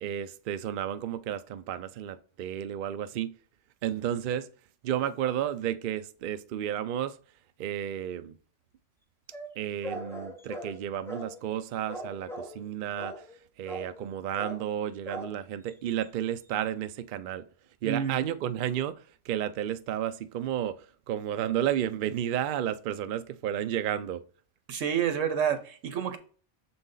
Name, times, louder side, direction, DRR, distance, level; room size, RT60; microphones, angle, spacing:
voice 1, 0.0-3.3 3.8-4.5 4.8-7.2 7.6-8.4 9.6-13.1 13.6-17.4 17.8-24.2, right 10 dB, 60° right, 0.5 m, -32 dB
sound 1, 9.3-11.6 11.9-12.7 13.0-13.4 13.7-14.1 14.3-14.7 15.1-15.4 15.7-15.8 16.0-16.1, equal, 5° left, 0.6 m, -40 dB
voice 2, 17.8-18.3 24.7-26.2, right 8 dB, 85° right, 1.3 m, -29 dB
6.9 x 4.0 x 3.8 m
omnidirectional pair, 1.3 m